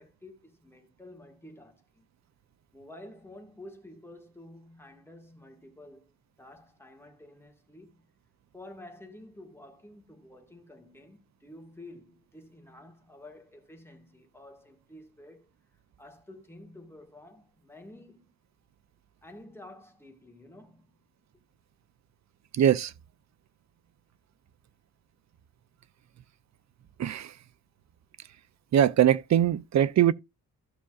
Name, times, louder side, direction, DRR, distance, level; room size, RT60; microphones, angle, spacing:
voice 1, 0.0-2.1 2.7-6.1 6.4-8.1 8.5-18.3 19.2-21.1, left 1 dB, 5° left, 1.7 m, -50 dB
voice 2, 22.5-22.9 27.0-27.3 28.7-30.1, right 10 dB, 50° right, 0.5 m, -22 dB
15.5 x 5.8 x 2.4 m
wide cardioid pair, 155°, 37 cm